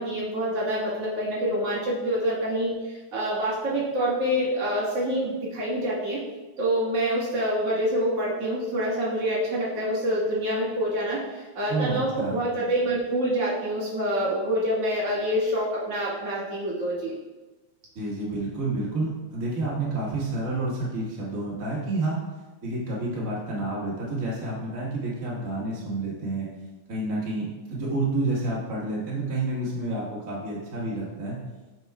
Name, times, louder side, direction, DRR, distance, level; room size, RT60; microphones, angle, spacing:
voice 1, 0.0-6.2 6.6-17.1, equal, 55° right, -7 dB, 2.6 m, -26 dB
voice 2, 11.7-12.4 17.9-22.2 22.6-26.5 26.9-31.4, right 2 dB, 40° right, -6 dB, 1.4 m, -29 dB
8.1 x 6.0 x 2.3 m, 1.2 s
omnidirectional pair, 3.4 m